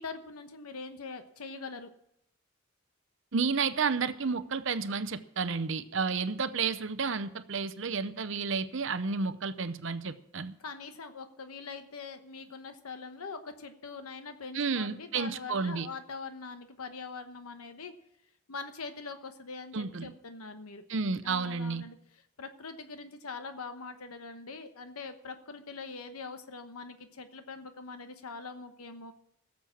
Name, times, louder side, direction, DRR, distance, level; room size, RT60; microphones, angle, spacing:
voice 1, 0.0-1.9 10.6-17.9 18.5-20.8 21.2-29.1, left 4 dB, 90° left, 8 dB, 1.1 m, -43 dB
voice 2, 3.3-10.5 14.5-15.9 19.7-20.1 20.9-21.8, right 5 dB, 60° right, 13 dB, 0.7 m, -31 dB
16.5 x 7.4 x 7.3 m, 0.75 s
head